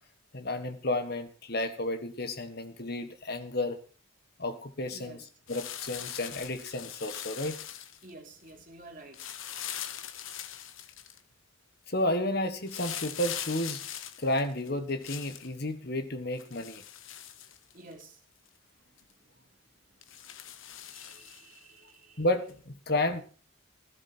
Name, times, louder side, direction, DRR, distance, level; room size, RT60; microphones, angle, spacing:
voice 1, 0.3-3.8 4.4-7.6 11.9-13.8 14.2-16.8 22.2-23.2, left 1 dB, 50° left, 1.6 m, -32 dB
voice 2, 4.9-5.3 8.0-9.2 17.7-18.2 20.9-22.3, right 2 dB, 40° right, 3.4 m, -50 dB
sound 1, 5.5-8.1 9.1-11.2 12.7-15.5 16.4-18.0 18.5-18.6 19.0-19.1 20.0-21.6 22.5-22.6, left 10 dB, 75° left, 1.1 m, -41 dB
15.5 x 13.0 x 4.5 m
head